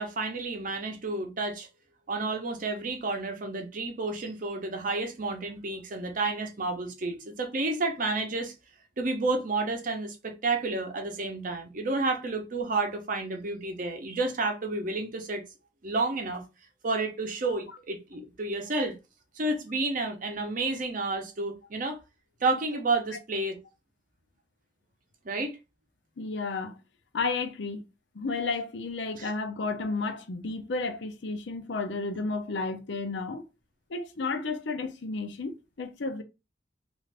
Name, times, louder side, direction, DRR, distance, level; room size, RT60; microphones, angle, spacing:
voice 1, 0.0-1.7 2.1-8.5 9.0-15.4 15.8-16.4 16.8-19.0 19.4-22.0 22.4-23.6 25.2-25.6 29.2-29.3, right 3 dB, 45° right, 0.7 m, -30 dB
voice 2, 26.2-26.8 27.1-27.8 28.1-33.4 33.9-36.2, left 3 dB, 75° left, 0.6 m, -32 dB
2.5 x 2.5 x 3.3 m
head